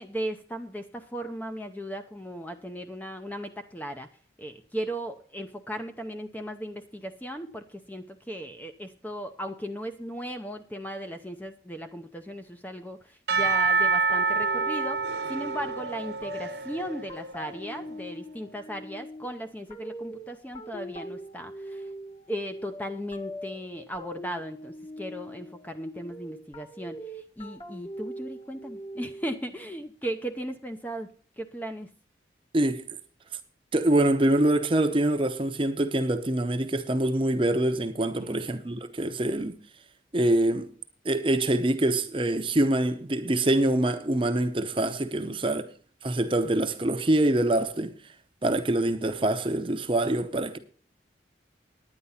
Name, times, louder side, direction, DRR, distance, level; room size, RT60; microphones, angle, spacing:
voice 1, 0.0-4.1 4.4-21.9 22.3-31.1 31.4-31.9 38.2-38.5, equal, 10° left, 0.6 m, -37 dB
Percussion / Church bell, 13.3-17.4, right 4 dB, 70° right, 1.3 m, -27 dB
sound 1, 14.1-29.5, equal, 30° left, 1.2 m, -42 dB
voice 2, 33.7-39.6 40.1-40.7 41.0-45.6 46.0-47.9 48.4-50.6, right 1 dB, 30° right, 0.8 m, -25 dB
9.8 x 9.8 x 5.6 m
head